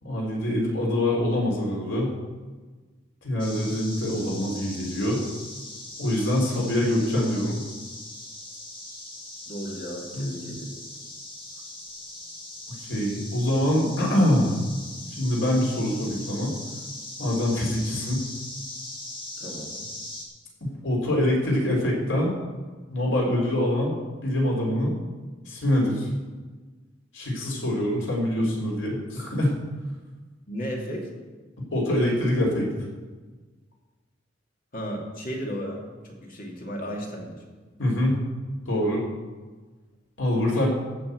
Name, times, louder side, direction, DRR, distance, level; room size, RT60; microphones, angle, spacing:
voice 1, 0.0-2.1 3.2-5.2 6.0-7.6 10.1-10.3 12.8-14.6 15.1-16.5 17.2-18.2 20.6-22.3 22.9-23.9 24.2-25.0 25.5-26.1 27.1-29.6 31.7-32.7 37.8-38.2 38.7-39.0 40.2-40.7, left 1 dB, 85° left, -2 dB, 3.7 m, -24 dB
sound 1, 3.4-20.3, left 2 dB, 30° left, 2.2 m, -40 dB
voice 2, 9.5-10.7 19.4-19.9 30.5-31.1 34.7-37.4 40.6-40.7, equal, 50° left, 0 dB, 2.4 m, -34 dB
15.0 x 5.9 x 7.8 m, 1.3 s
head